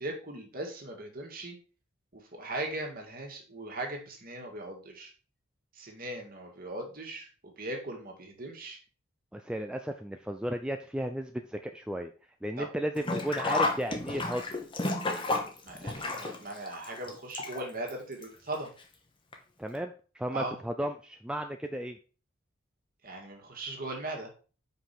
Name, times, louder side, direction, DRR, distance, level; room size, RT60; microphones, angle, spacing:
voice 1, 0.0-1.6 2.1-5.1 5.8-8.8 12.6-12.7 15.6-18.7 20.3-20.6 23.0-24.3, right 2 dB, 45° right, 1 dB, 2.0 m, -39 dB
voice 2, 9.3-12.1 12.4-14.4 19.6-22.0, equal, 5° right, 5 dB, 0.3 m, -34 dB
Sink (filling or washing), 13.0-17.9 18.2-18.3 19.3-19.4 19.7-19.8, left 2 dB, 25° left, 1.1 m, -31 dB
5.3 x 5.0 x 5.7 m, 0.38 s
head